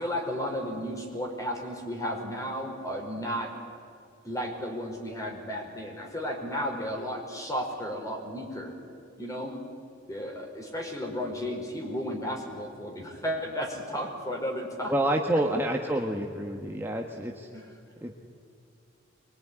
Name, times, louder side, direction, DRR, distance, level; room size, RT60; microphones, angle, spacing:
voice 1, 0.0-3.5 4.2-8.7 9.2-9.5 10.1-14.9 17.5-17.7, equal, 15° left, 2 dB, 4.9 m, -33 dB
voice 2, 14.9-17.5 18.0-18.2, right 1 dB, 10° right, 1 dB, 1.4 m, -28 dB
24.0 x 22.5 x 9.9 m, 2.5 s
head